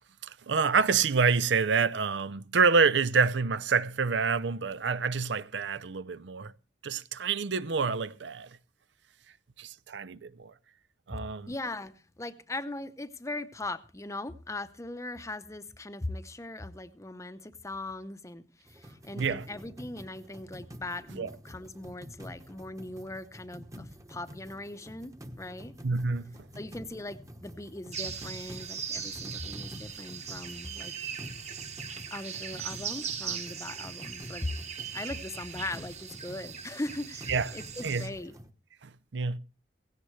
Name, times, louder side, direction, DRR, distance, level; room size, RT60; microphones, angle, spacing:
voice 1, 0.2-6.5 6.8-8.5 9.6-10.5 11.1-11.5 19.1-19.5 21.1-21.3 25.8-26.4 37.3-37.5 37.8-38.1 38.8-39.4, right 5 dB, 80° right, 0.6 m, -27 dB
voice 2, 11.5-25.7 26.6-30.9 32.1-34.5 34.9-38.3, left 2 dB, 15° left, 0.7 m, -39 dB
sound 1, 18.6-38.5, equal, 20° right, 1.1 m, -48 dB
sound 2, 27.9-38.1, right 7 dB, 40° right, 1.5 m, -39 dB
17.0 x 16.5 x 3.2 m
head